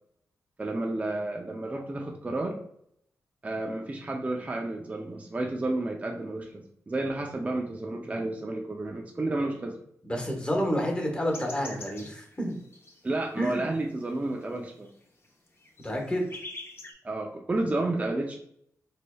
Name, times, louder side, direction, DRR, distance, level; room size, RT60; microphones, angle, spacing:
voice 1, 0.6-2.6 3.4-9.8 13.0-14.9 17.0-18.4, right 2 dB, 25° right, 1 dB, 0.4 m, -31 dB
voice 2, 10.1-12.5 13.4-13.7 15.8-16.3, equal, 15° left, 1 dB, 1.0 m, -29 dB
sound 1, 11.3-13.6 14.0-16.9, left 2 dB, 45° left, 0.8 m, -44 dB
3.9 x 3.3 x 2.2 m, 0.70 s
wide cardioid pair, 85°, 6 cm